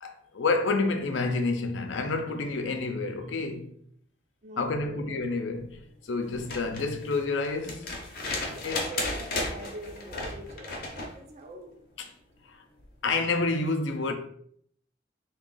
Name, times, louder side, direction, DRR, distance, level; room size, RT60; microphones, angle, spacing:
voice 1, 0.0-3.8 4.6-7.9 8.6-8.9 12.0-12.1 13.0-14.1, left 3 dB, 85° left, 0.5 m, -29 dB
voice 2, 4.4-5.1 8.2-11.8, equal, 35° right, 0.5 m, -43 dB
sound 1, 6.3-11.2 12.8-12.9, left 2 dB, 50° left, 0.7 m, -34 dB
3.5 x 2.3 x 3.8 m
head